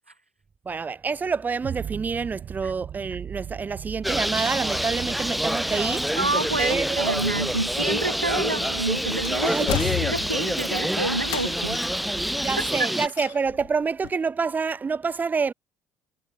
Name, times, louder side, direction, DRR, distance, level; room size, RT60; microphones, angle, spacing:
voice 1, 0.6-6.1 6.6-7.1 9.4-9.8 12.4-15.5, right 5 dB, 30° right, 4.5 m, -27 dB
sound 1, 1.6-12.8, right 9 dB, 45° right, 5.1 m, -40 dB
Bird, 4.0-13.1, equal, ahead, 1.1 m, -27 dB
voice 2, 6.2-9.7 10.0-11.8 12.4-12.9, right 2 dB, 90° right, 0.9 m, -28 dB
sound 2, 8.5-8.9 9.2-10.6 11.2-12.0 13.1-13.7 14.0-14.1, left 21 dB, 60° left, 2.8 m, -32 dB
figure-of-eight pair, 55°, 6 cm